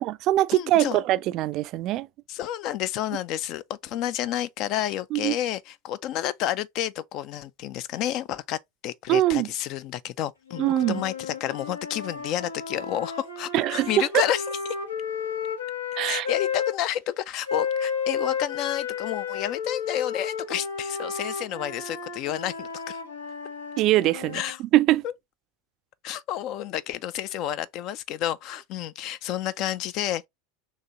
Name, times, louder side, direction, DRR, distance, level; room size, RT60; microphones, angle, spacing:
voice 1, 0.0-2.1 5.1-5.4 9.1-9.5 10.6-11.0 13.5-13.9 14.1-14.2 16.0-16.3 23.8-24.4 24.7-25.0, right 15 dB, 50° right, 0.3 m, -22 dB
voice 2, 0.5-1.0 2.3-14.6 16.1-23.0 24.3-24.6 25.0-25.1 26.0-30.3, left 12 dB, 50° left, 0.4 m, -30 dB
sound 1, 10.5-16.8 17.5-24.6, left 6 dB, 85° left, 0.9 m, -32 dB
4.0 x 2.9 x 3.0 m
hypercardioid pair, 85°, 0 cm